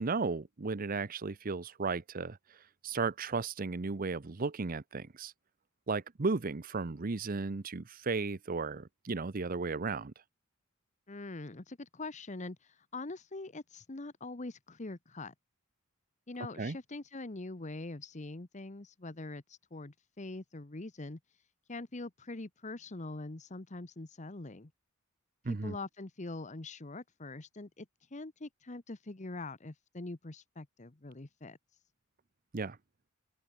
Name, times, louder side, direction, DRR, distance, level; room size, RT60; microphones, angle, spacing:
voice 1, 0.0-2.4 2.8-5.3 5.9-10.1 16.6-16.8 25.4-25.8 32.5-32.8, right 4 dB, 45° right, 0.7 m, -34 dB
voice 2, 11.1-15.3 16.3-24.7 25.4-31.8, left 2 dB, 35° left, 1.1 m, -44 dB
open air
head